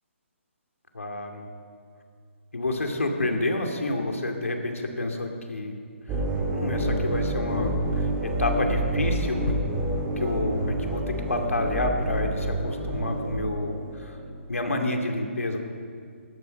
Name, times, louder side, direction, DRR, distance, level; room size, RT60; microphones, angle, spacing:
voice 1, 0.9-1.4 2.5-5.7 6.1-6.2 6.5-9.5 10.2-14.2 14.5-15.6, left 2 dB, 85° left, 3 dB, 2.4 m, -29 dB
sound 1, 6.1-14.2, right 1 dB, 20° right, 2.7 m, -28 dB
16.5 x 12.5 x 5.6 m, 2.2 s
figure-of-eight pair, 145°, 7 cm